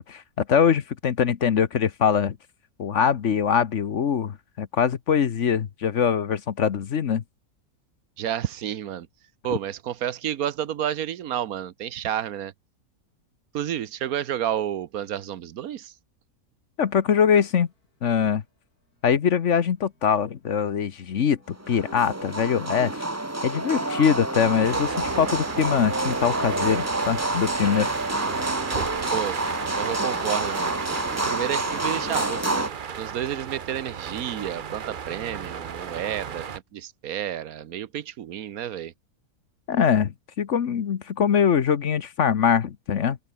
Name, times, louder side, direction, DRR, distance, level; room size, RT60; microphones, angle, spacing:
voice 1, 0.0-2.4 2.8-7.2 16.8-17.7 18.0-18.4 19.0-23.0 23.4-27.9 39.7-43.2, left 7 dB, 55° left, 1.3 m, -23 dB
voice 2, 8.2-9.1 9.4-12.5 13.5-15.9 29.1-29.4 29.8-30.7 31.2-32.6 33.0-36.5 36.7-38.9, right 10 dB, 75° right, 1.3 m, -30 dB
sound 1, 19.1-20.0 20.9-27.4, left 2 dB, 80° left, 7.2 m, -49 dB
sound 2, 21.6-32.7, right 2 dB, 10° right, 1.2 m, -28 dB
sound 3, 24.6-36.6, right 7 dB, 45° right, 0.8 m, -34 dB
open air
omnidirectional pair, 1.6 m